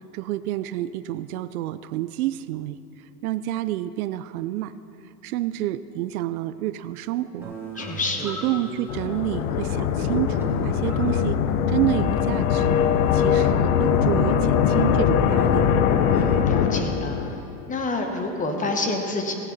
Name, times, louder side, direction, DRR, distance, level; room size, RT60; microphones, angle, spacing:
voice 1, 0.1-2.8 3.2-4.7 5.2-7.5 8.2-11.4 11.7-12.8 13.1-15.7, right 14 dB, 70° right, 15 dB, 0.6 m, -28 dB
sound 1, 7.4-16.4, right 2 dB, 5° right, 1.8 m, -38 dB
voice 2, 7.8-8.3 16.1-17.2 17.7-19.4, left 3 dB, 15° left, 3 dB, 1.3 m, -28 dB
sound 2, 8.9-17.4, left 8 dB, 65° left, 0.9 m, -21 dB
17.0 x 9.8 x 4.2 m, 3.0 s
supercardioid pair, 130°, 46 cm